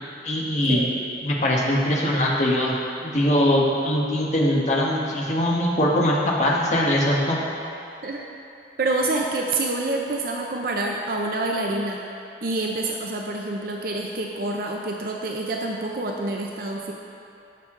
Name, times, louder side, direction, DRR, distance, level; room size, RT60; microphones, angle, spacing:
voice 1, 0.2-0.9 1.2-7.4, left 1 dB, 40° left, -3 dB, 1.2 m, -22 dB
voice 2, 8.8-12.0 12.4-16.9, right 2 dB, 50° right, 0 dB, 0.6 m, -27 dB
12.5 x 6.6 x 3.7 m, 2.7 s
head